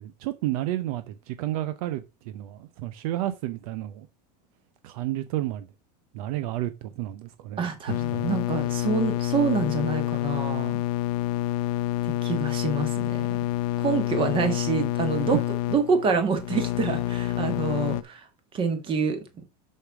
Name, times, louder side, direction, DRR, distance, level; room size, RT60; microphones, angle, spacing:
voice 1, 0.0-4.1 4.8-5.7 6.1-8.3 14.2-14.5 15.1-15.4, right 14 dB, 60° right, 0.7 m, -31 dB
voice 2, 7.6-10.8 12.2-13.3 13.8-15.4 15.7-18.2 18.5-19.2, right 5 dB, 25° right, 1.8 m, -27 dB
sound 1, 7.9-18.0, left 15 dB, 60° left, 0.7 m, -28 dB
6.6 x 6.5 x 4.8 m
supercardioid pair, 160°, 21 cm